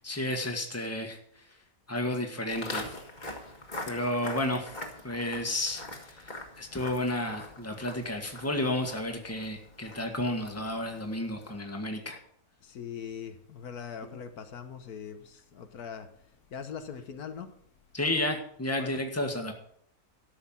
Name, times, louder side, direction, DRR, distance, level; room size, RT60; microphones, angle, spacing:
voice 1, 0.0-1.4 1.9-3.0 3.9-4.8 5.0-12.2 17.9-19.5, left 1 dB, 10° left, 3 dB, 1.6 m, -32 dB
Walk footsteps, 2.5-11.7, left 1 dB, 30° left, 1.8 m, -43 dB
voice 2, 12.6-16.1 16.5-17.5 18.8-19.0, left 7 dB, 85° left, 8 dB, 1.6 m, -41 dB
13.5 x 6.5 x 7.4 m, 0.67 s
omnidirectional pair, 1.5 m